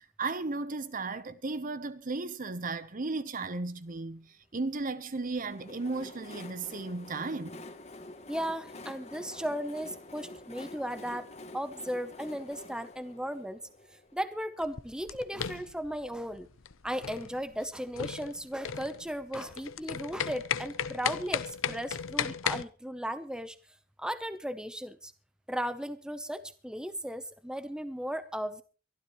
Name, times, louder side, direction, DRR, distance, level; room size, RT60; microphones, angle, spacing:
voice 1, 0.0-4.3 4.5-7.6, right 3 dB, 40° right, 0.8 m, -35 dB
Train, 5.2-14.8, left 2 dB, 30° left, 1.7 m, -48 dB
voice 2, 8.3-11.3 11.5-13.6 14.1-16.5 16.8-23.6 24.0-25.1 25.5-28.6, equal, 5° right, 0.8 m, -36 dB
sound 1, 14.6-22.6, left 8 dB, 70° left, 0.7 m, -36 dB
24.0 x 12.5 x 3.1 m
head